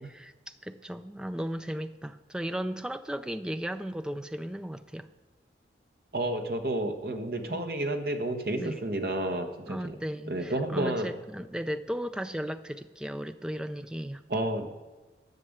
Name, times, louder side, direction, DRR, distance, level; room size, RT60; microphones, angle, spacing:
voice 1, 0.1-5.1 7.5-7.7 8.6-8.8 9.7-14.2, equal, 5° right, 10 dB, 0.4 m, -36 dB
voice 2, 6.1-10.0 10.3-11.1 14.3-14.7, right 1 dB, 55° right, 5 dB, 1.3 m, -31 dB
11.0 x 6.8 x 7.9 m, 1.2 s
head